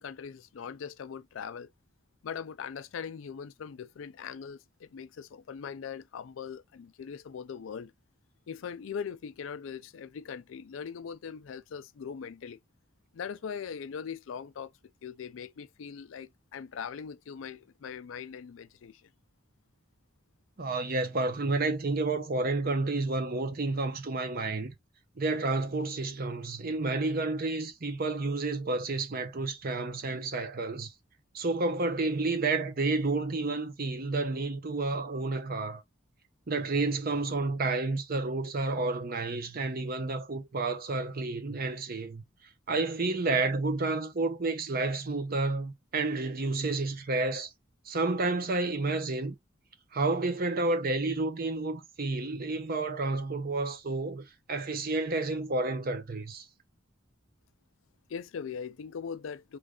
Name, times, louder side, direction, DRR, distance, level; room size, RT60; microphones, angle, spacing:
voice 1, 0.0-1.7 2.2-7.9 8.5-12.6 13.1-14.7 15.0-19.0 58.1-59.6, left 7 dB, 85° left, 0.4 m, -40 dB
voice 2, 20.6-24.7 25.2-30.9 31.3-35.8 36.5-42.2 42.7-47.5 47.8-49.4 49.9-56.5, right 3 dB, 50° right, 0.7 m, -30 dB
3.2 x 2.4 x 3.6 m
head